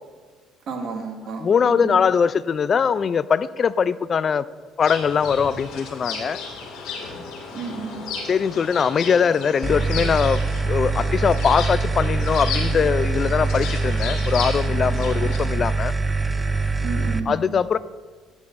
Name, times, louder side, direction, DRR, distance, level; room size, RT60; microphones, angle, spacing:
voice 1, 0.7-2.0 7.5-8.0 16.8-17.5, right 4 dB, 55° right, 1 dB, 1.9 m, -32 dB
voice 2, 1.4-4.5 4.8-6.4 8.3-10.4 10.7-15.9 17.3-17.8, left 6 dB, 40° left, 17 dB, 0.3 m, -21 dB
sound 1, 4.8-15.4, left 4 dB, 80° left, 2.1 m, -34 dB
sound 2, 9.6-17.2, right 3 dB, 20° right, 0.6 m, -24 dB
13.5 x 9.7 x 2.6 m, 1.4 s
cardioid pair, 95°, 0 cm